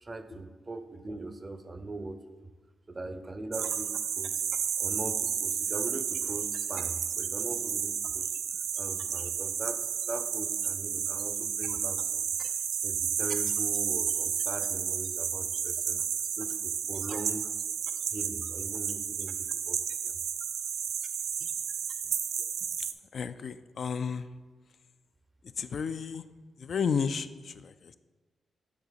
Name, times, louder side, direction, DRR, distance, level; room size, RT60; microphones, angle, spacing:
voice 1, 0.0-2.5 2.9-4.3 4.8-8.3 8.7-12.3 12.8-16.0 16.4-17.5 18.1-20.1 22.0-22.1, right 2 dB, 25° right, 9 dB, 0.5 m, -41 dB
sound 1, 3.5-22.9, right 8 dB, 85° right, 0.4 m, -32 dB
voice 2, 23.1-24.3 25.6-26.2 26.6-28.0, left 6 dB, 55° left, 11 dB, 0.3 m, -32 dB
9.9 x 3.9 x 4.1 m, 1.3 s
cardioid pair, 105°, 0 cm